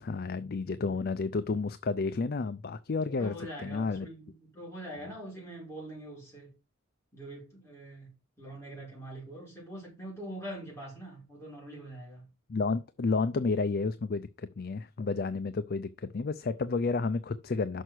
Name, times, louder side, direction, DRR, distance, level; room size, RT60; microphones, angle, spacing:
voice 1, 0.0-4.1 12.5-17.8, left 4 dB, 50° left, 0.4 m, -31 dB
voice 2, 3.0-6.5 7.1-12.3, right 1 dB, 15° left, 5.3 m, -44 dB
6.4 x 5.5 x 6.1 m
head